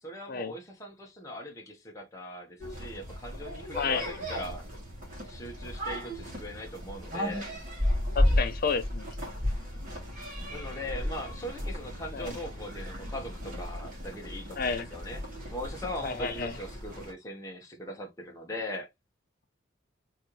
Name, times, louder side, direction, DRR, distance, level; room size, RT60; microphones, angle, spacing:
voice 1, 0.0-4.7 5.2-7.4 10.5-15.2 15.5-18.9, left 1 dB, 15° left, 1.0 m, -40 dB
sound 1, 2.6-17.1, left 1 dB, 45° right, 2.3 m, -34 dB
voice 2, 3.8-4.1 8.1-9.1 12.1-12.3 14.6-14.9 16.0-16.6, left 5 dB, 50° left, 0.6 m, -31 dB
3.8 x 3.1 x 2.9 m
head